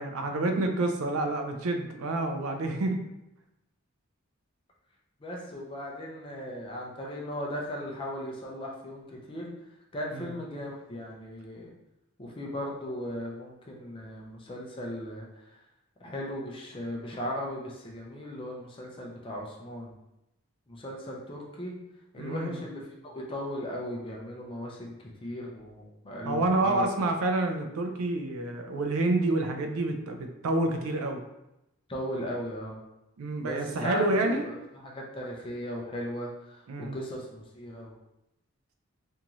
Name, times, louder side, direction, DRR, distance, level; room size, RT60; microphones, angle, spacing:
voice 1, 0.0-3.0 10.1-10.3 22.2-22.6 26.3-31.2 33.2-34.4 36.7-37.0, right 2 dB, 80° right, 5 dB, 0.4 m, -28 dB
voice 2, 5.2-9.5 9.9-11.7 12.2-15.6 16.0-19.9 20.7-21.7 22.1-24.9 25.2-26.9 31.9-32.8 33.4-37.9, equal, 25° left, -2 dB, 0.4 m, -37 dB
2.6 x 2.3 x 3.0 m, 0.90 s
head